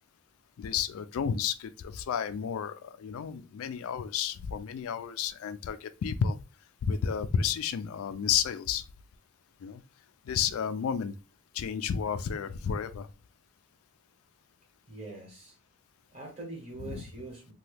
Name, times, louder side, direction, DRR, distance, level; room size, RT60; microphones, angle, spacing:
voice 1, 0.6-6.4 6.8-8.8 9.6-9.8 10.3-11.1 11.5-13.1 16.8-17.0, left 7 dB, 80° left, 0.3 m, -31 dB
voice 2, 14.9-15.5 16.1-17.5, right 2 dB, 30° right, 1.1 m, -43 dB
2.9 x 2.2 x 3.2 m
head